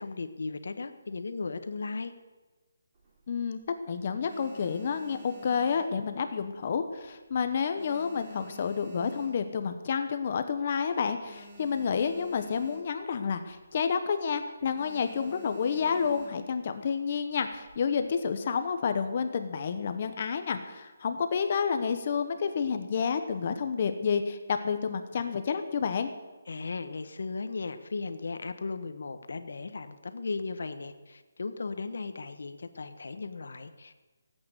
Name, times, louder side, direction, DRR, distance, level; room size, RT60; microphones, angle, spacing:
voice 1, 0.0-2.1 26.5-34.0, left 4 dB, 65° left, 10 dB, 1.3 m, -36 dB
sound 1, 2.9-3.7 4.1-6.6 6.8-7.2 7.5-9.8 10.2-10.3 10.5-10.6 10.9-13.1 13.5-13.7 14.0-14.3 14.7-16.6 17.3-17.9, equal, 25° right, 3.3 m, -52 dB
voice 2, 3.3-3.6 3.9-26.1, left 6 dB, 35° left, 8 dB, 1.0 m, -30 dB
17.0 x 8.7 x 8.0 m, 1.2 s
hypercardioid pair, 175°, 0 cm